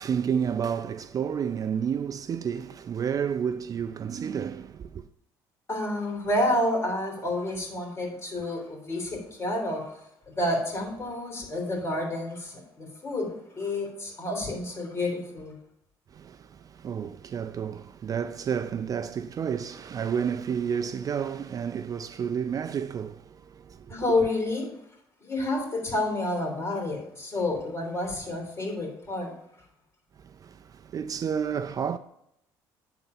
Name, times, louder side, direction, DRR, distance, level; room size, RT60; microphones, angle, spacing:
voice 1, 0.0-5.1 16.1-24.0 30.2-32.0, right 7 dB, 40° right, 0.4 m, -31 dB
voice 2, 5.7-10.0 10.3-15.6 23.9-24.7 25.2-29.3, left 1 dB, 30° left, 3.3 m, -29 dB
9.8 x 4.0 x 5.4 m
supercardioid pair, 85°, 9 cm